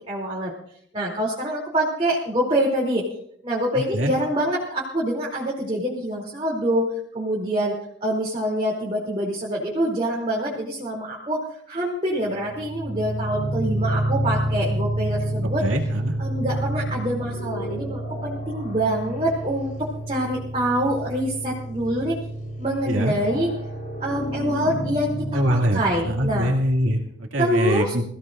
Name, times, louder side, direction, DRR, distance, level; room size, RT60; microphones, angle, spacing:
voice 1, 0.1-0.5 0.9-3.0 3.4-7.7 8.0-15.6 16.2-19.7 20.1-22.2 22.6-23.5 24.0-26.5 27.4-27.9, right 1 dB, 30° right, -4 dB, 3.0 m, -25 dB
sound 1, 12.4-27.0, right 1 dB, 45° left, 5.1 m, -29 dB
voice 2, 15.6-16.1 22.9-23.1 25.3-25.8 26.1-28.0, equal, 90° right, 2 dB, 2.4 m, -23 dB
23.5 x 16.0 x 2.5 m, 0.68 s
head